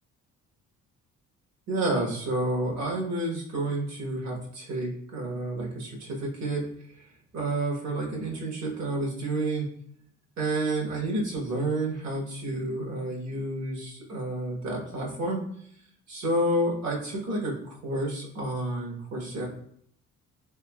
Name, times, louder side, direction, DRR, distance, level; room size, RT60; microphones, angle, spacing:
voice 1, 1.7-6.7 7.0-9.7 10.4-15.4 16.1-19.5, right 1 dB, 60° right, -1 dB, 1.3 m, -30 dB
3.5 x 3.4 x 2.3 m, 0.65 s
cardioid pair, 90°, 30 cm